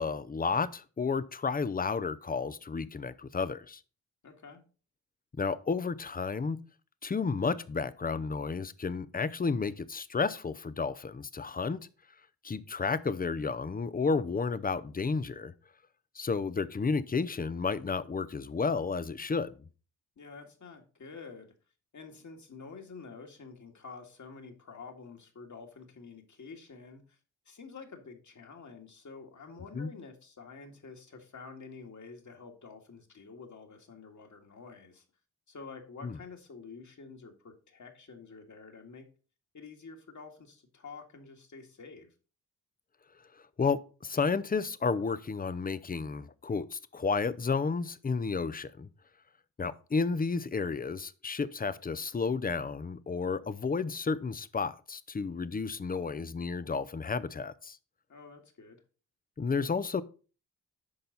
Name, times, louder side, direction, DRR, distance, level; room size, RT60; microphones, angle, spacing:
voice 1, 0.0-3.8 5.4-6.6 7.0-11.8 12.4-15.5 16.2-19.5 29.7-29.9 36.0-36.2 43.6-48.9 49.6-57.8 59.4-60.0, left 4 dB, 25° left, 0.7 m, -32 dB
voice 2, 4.2-4.6 20.2-21.5 21.9-27.2 27.5-35.0 35.5-39.1 39.5-42.1 58.1-58.8, left 4 dB, 50° left, 2.0 m, -48 dB
8.8 x 5.4 x 4.0 m
supercardioid pair, 50°, 37 cm